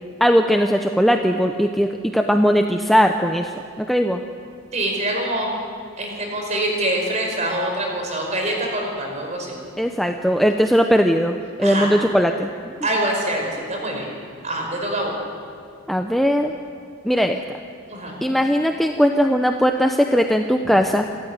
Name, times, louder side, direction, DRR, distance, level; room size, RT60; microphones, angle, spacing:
voice 1, 0.2-4.2 9.8-12.5 15.9-16.5 17.0-17.6 18.2-21.1, equal, ahead, 4 dB, 0.6 m, -19 dB
voice 2, 4.7-5.5 6.0-9.6 11.6-12.0 12.8-14.1 14.4-15.2 17.9-18.3, right 1 dB, 35° right, 1 dB, 4.9 m, -25 dB
28.0 x 13.0 x 9.5 m, 2.4 s
head